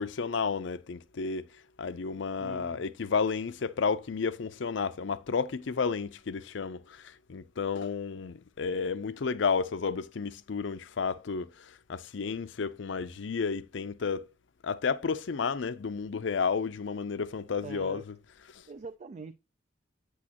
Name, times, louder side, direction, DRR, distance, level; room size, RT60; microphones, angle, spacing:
voice 1, 0.0-1.5 1.8-14.3 14.6-18.2 18.5-18.6, left 5 dB, 65° left, 0.5 m, -32 dB
voice 2, 2.4-2.8 17.6-18.0 18.7-19.3, right 4 dB, 35° right, 0.3 m, -43 dB
8.4 x 6.3 x 2.8 m
head